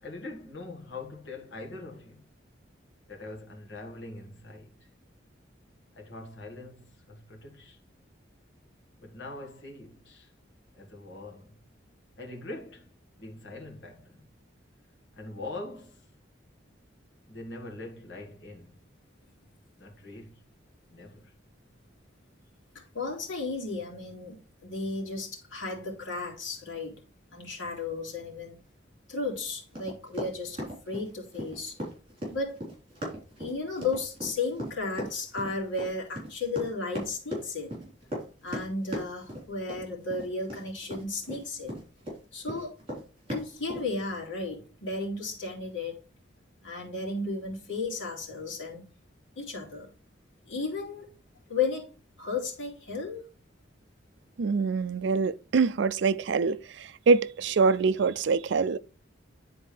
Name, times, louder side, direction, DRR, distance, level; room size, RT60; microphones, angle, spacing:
voice 1, 0.0-2.3 3.1-4.9 5.9-7.8 9.0-10.3 10.7-11.6 12.2-12.9 13.2-14.3 15.1-16.1 17.3-18.8 19.8-20.4 20.9-21.3, left 2 dB, 65° left, 1.8 m, -43 dB
voice 2, 22.7-27.0 27.3-28.6 29.1-31.8 32.3-32.6 33.4-37.8 38.4-41.8 42.3-42.8 43.3-46.0 46.6-48.9 49.4-49.9 50.5-51.1 51.5-51.9 52.2-53.2, left 3 dB, 80° left, 2.8 m, -34 dB
Run, 29.7-42.2 42.5-43.8, equal, 30° right, 4.0 m, -37 dB
voice 3, 54.4-58.8, right 4 dB, 65° right, 0.4 m, -25 dB
10.0 x 4.3 x 3.3 m
head